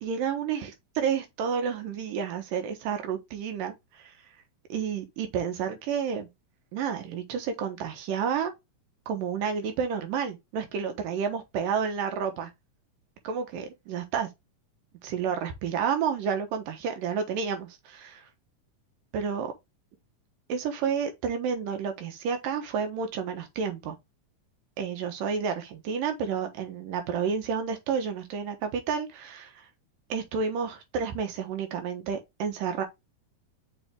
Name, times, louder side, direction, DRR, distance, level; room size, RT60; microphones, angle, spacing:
voice 1, 0.0-4.1 4.7-6.3 6.7-8.5 9.1-12.5 13.2-14.3 15.0-18.2 19.1-19.5 20.5-24.0 24.8-29.5 30.1-32.9, right 6 dB, 90° right, 2.9 m, -30 dB
7.0 x 4.0 x 3.5 m
omnidirectional pair, 3.8 m